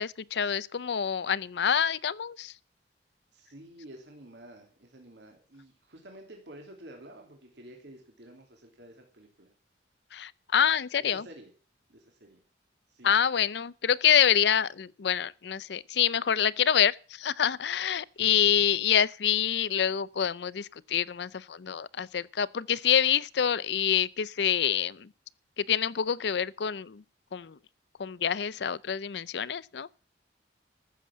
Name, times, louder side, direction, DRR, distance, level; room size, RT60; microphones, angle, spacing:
voice 1, 0.0-2.5 10.1-11.2 13.0-25.1 25.6-27.0 27.3-27.6 28.0-29.9, left 8 dB, 70° left, 0.5 m, -26 dB
voice 2, 3.3-9.5 11.1-11.5 11.9-12.4 12.9-13.1 18.2-18.3, right 1 dB, 75° right, 2.9 m, -50 dB
14.0 x 7.2 x 7.2 m
head